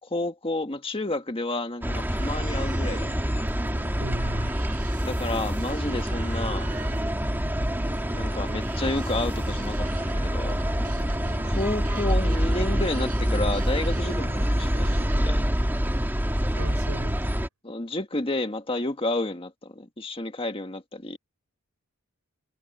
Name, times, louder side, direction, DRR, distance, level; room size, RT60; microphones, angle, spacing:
voice 1, 0.0-3.3 5.0-6.7 8.1-10.6 11.4-15.4 17.6-21.2, left 2 dB, 25° left, 1.6 m, -31 dB
sound 1, 1.8-17.5, equal, 10° right, 2.1 m, -26 dB
sound 2, 2.2-15.5, right 2 dB, 40° right, 5.4 m, -43 dB
voice 2, 4.0-4.5 16.6-17.3, right 1 dB, 80° right, 5.0 m, -36 dB
head